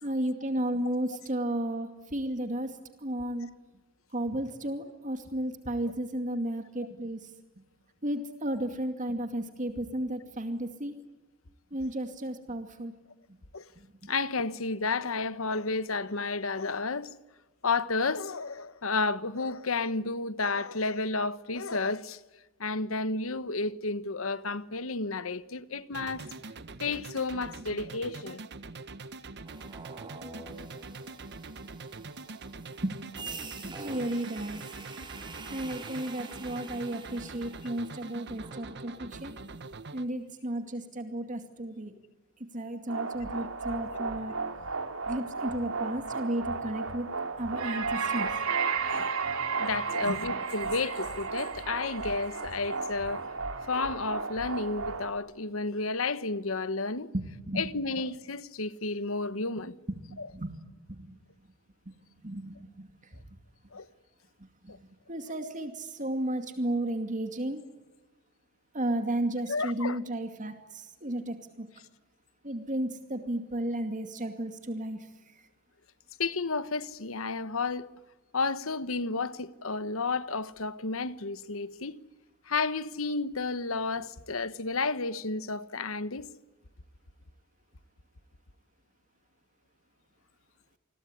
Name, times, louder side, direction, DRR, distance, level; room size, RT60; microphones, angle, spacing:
voice 1, 0.0-3.5 4.1-7.3 8.0-10.9 11.7-12.9 14.0-14.1 32.0-32.1 32.8-33.0 33.6-34.6 35.5-39.4 39.9-41.9 42.5-44.3 45.1-47.1 47.4-48.3 50.1-50.2 57.1-57.7 59.9-60.6 61.0-61.1 62.2-62.9 64.6-64.8 65.1-67.6 68.7-71.7 72.4-75.1 75.3-75.4, right 1 dB, 40° right, 2.4 m, -33 dB
voice 2, 14.1-17.1 17.6-22.2 22.6-26.2 26.8-28.4 49.6-53.3 53.7-57.1 57.5-59.7 60.2-60.3 63.7-63.9 69.5-70.0 76.2-77.9 78.3-82.0 82.5-86.3, left 3 dB, 75° left, 1.2 m, -31 dB
sound 1, 25.9-40.1, right 3 dB, 55° right, 1.3 m, -44 dB
sound 2, 29.5-39.6, right 3 dB, 25° right, 4.3 m, -46 dB
sound 3, 42.9-55.1, right 4 dB, 85° right, 3.1 m, -33 dB
28.0 x 21.5 x 9.8 m
head